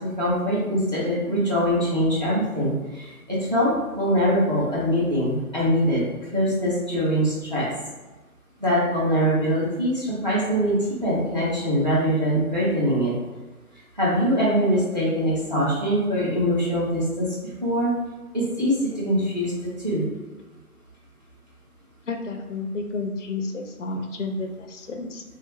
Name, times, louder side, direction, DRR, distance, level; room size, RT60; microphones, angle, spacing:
voice 1, 0.0-6.0 6.3-7.6 8.6-13.1 14.0-17.3 17.6-17.9 18.3-19.5 19.8-20.0, equal, 30° right, -8 dB, 0.7 m, -23 dB
voice 2, 22.1-25.2, left 3 dB, 55° left, 3 dB, 0.5 m, -31 dB
3.2 x 2.4 x 3.0 m, 1.2 s
figure-of-eight pair, 160°, 45 cm